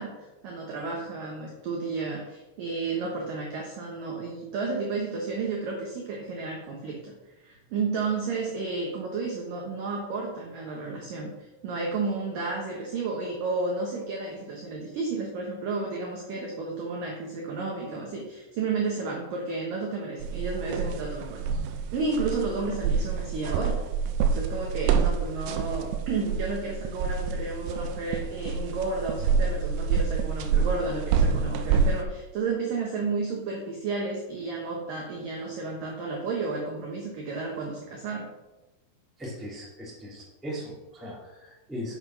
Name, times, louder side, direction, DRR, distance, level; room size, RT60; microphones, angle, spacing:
voice 1, 0.0-7.1 7.4-21.6 21.9-23.8 24.3-38.3, right 3 dB, 70° right, -1 dB, 2.2 m, -32 dB
sound 1, 20.2-32.0, right 5 dB, 85° right, 3.0 m, -27 dB
voice 2, 39.2-41.9, equal, ahead, -5 dB, 1.9 m, -38 dB
7.9 x 6.7 x 6.1 m, 1.1 s
omnidirectional pair, 5.5 m